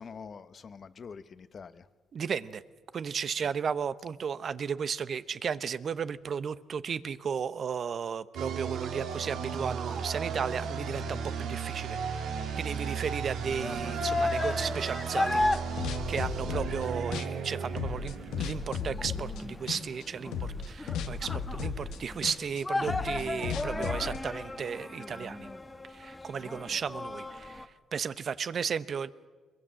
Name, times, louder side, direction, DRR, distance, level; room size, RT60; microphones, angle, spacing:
voice 1, 0.0-1.9 3.4-3.5 22.2-22.6, left 5 dB, 45° left, 12 dB, 1.1 m, -46 dB
voice 2, 2.1-2.6 2.9-12.0 12.6-15.4 16.1-25.5 25.9-29.3, right 6 dB, 50° right, 15 dB, 0.9 m, -34 dB
sound 1, 8.3-19.0, right 6 dB, 80° right, 2.3 m, -35 dB
sound 2, 13.3-27.7, left 2 dB, 15° left, 1.3 m, -35 dB
sound 3, 15.4-16.9 17.1-19.4 19.7-20.1 20.3-24.2, left 6 dB, 85° left, 1.4 m, -35 dB
23.5 x 22.0 x 7.5 m, 1.4 s
cardioid pair, 90°, 0 cm